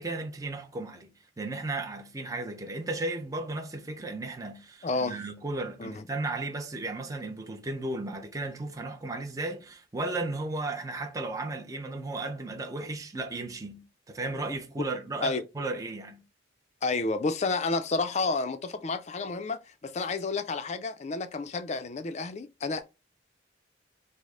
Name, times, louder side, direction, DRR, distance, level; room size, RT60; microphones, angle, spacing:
voice 1, 0.0-16.2, right 2 dB, 20° right, 0.5 m, -35 dB
voice 2, 4.8-5.2 5.8-6.0 15.2-15.4 16.8-22.9, left 3 dB, 40° left, 0.4 m, -30 dB
5.2 x 2.0 x 3.6 m
head